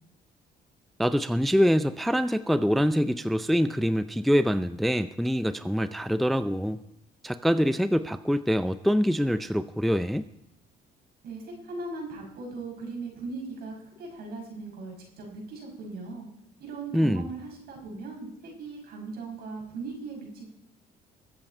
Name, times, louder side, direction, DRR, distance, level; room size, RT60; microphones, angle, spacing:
voice 1, 1.0-6.8 7.2-10.2 16.9-17.3, equal, ahead, 12 dB, 0.4 m, -25 dB
voice 2, 11.2-16.3 16.6-20.5, right 3 dB, 70° right, 0 dB, 5.8 m, -39 dB
22.0 x 8.2 x 4.4 m, 0.78 s
cardioid pair, 110°, 17 cm